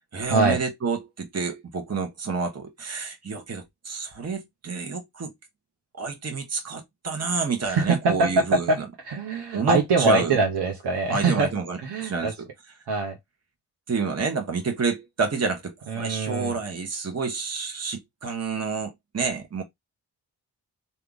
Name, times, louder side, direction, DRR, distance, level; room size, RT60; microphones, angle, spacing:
voice 1, 0.1-5.3 6.0-8.7 9.5-10.4 11.1-12.5 13.9-19.6, right 4 dB, 35° right, 1.3 m, -29 dB
voice 2, 7.6-8.8 9.0-11.5 11.8-12.3 12.9-13.2 15.9-16.6, right 3 dB, 70° right, 1.3 m, -23 dB
3.4 x 2.8 x 3.9 m
supercardioid pair, 40°, 42 cm